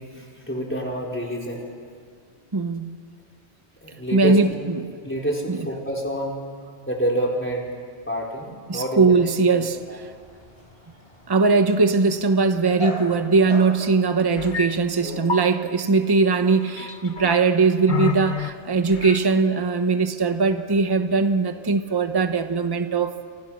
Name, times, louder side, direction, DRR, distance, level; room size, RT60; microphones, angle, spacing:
voice 1, 0.0-1.7 3.8-4.4 5.0-6.4 6.9-7.7 8.1-9.2 9.9-10.0 17.1-17.2, equal, 10° left, -2 dB, 4.2 m, -28 dB
voice 2, 2.5-3.0 4.1-4.9 5.5-5.7 8.7-10.1 11.3-23.1, right 4 dB, 20° right, 8 dB, 1.0 m, -20 dB
Dog, 9.7-15.0, left 1 dB, 30° left, 5.8 m, -39 dB
sound 1, 14.4-14.7 15.0-15.5 16.4-17.4 17.9-18.5 18.9-19.3, left 6 dB, 50° left, 1.4 m, -29 dB
28.0 x 28.0 x 6.3 m, 2.1 s
omnidirectional pair, 1.1 m